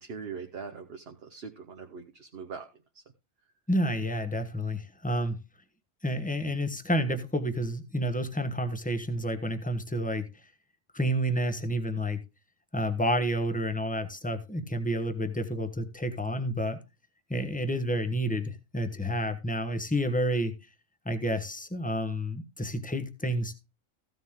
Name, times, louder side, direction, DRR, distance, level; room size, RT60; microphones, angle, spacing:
voice 1, 0.0-2.7 2.9-3.0, right 5 dB, 50° right, 1.2 m, -41 dB
voice 2, 3.7-5.4 6.0-10.3 10.9-12.2 12.7-16.8 17.3-20.5 21.0-23.6, equal, 5° left, 1.2 m, -30 dB
15.0 x 7.3 x 3.7 m
omnidirectional pair, 1.4 m